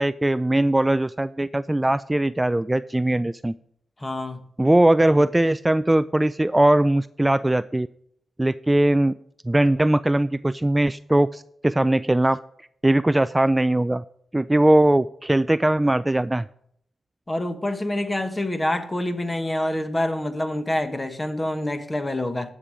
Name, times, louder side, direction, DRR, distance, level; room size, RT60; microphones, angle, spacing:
voice 1, 0.0-3.5 4.6-7.9 8.4-9.1 9.5-12.4 12.8-14.0 14.3-16.4, right 1 dB, 15° right, 14 dB, 0.3 m, -20 dB
voice 2, 4.0-4.4 17.3-22.5, left 1 dB, 20° left, 9 dB, 1.4 m, -26 dB
12.5 x 7.5 x 5.1 m, 0.71 s
cardioid pair, 75°, 0 cm